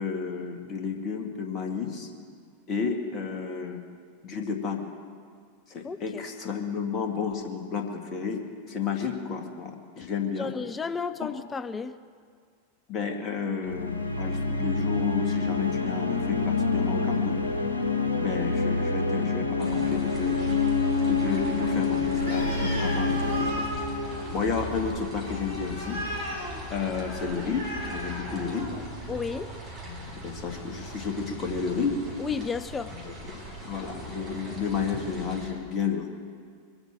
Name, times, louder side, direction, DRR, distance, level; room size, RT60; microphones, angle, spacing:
voice 1, 0.0-2.1 2.7-3.8 4.2-4.8 5.7-8.4 8.7-10.5 11.2-11.3 12.9-17.4 18.2-20.4 21.1-23.7 24.3-26.0 26.7-28.8 29.8-32.0 33.0-36.1, left 5 dB, 30° left, 3 dB, 1.8 m, -32 dB
voice 2, 5.8-6.2 10.4-12.0 29.1-29.5 32.2-32.9, left 5 dB, 15° left, 13 dB, 0.4 m, -32 dB
sound 1, 13.6-25.2, left 4 dB, 80° left, 1.4 m, -27 dB
sound 2, 19.6-35.5, equal, 25° right, 3.6 m, -40 dB
Animal, 22.2-28.9, equal, 75° right, 3.3 m, -37 dB
22.5 x 8.0 x 7.5 m, 2.1 s
figure-of-eight pair, 90°, 0 cm